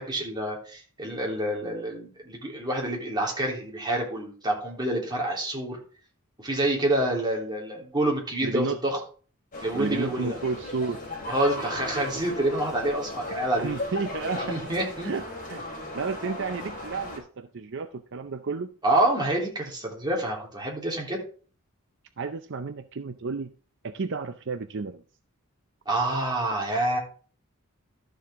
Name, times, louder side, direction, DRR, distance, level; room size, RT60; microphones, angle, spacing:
voice 1, 0.0-5.8 6.4-9.0 9.6-10.4 11.3-13.7 14.3-15.1 18.8-21.2 25.8-27.0, right 1 dB, 20° right, -2 dB, 3.3 m, -27 dB
voice 2, 8.4-8.8 9.8-11.0 13.3-14.6 15.0-15.2 15.5-15.6 15.9-18.8 22.2-23.5 23.8-25.0, right 4 dB, 55° right, 8 dB, 0.6 m, -32 dB
sound 1, 9.5-17.2, left 1 dB, 35° left, 4.7 m, -36 dB
12.5 x 7.0 x 3.6 m, 0.40 s
head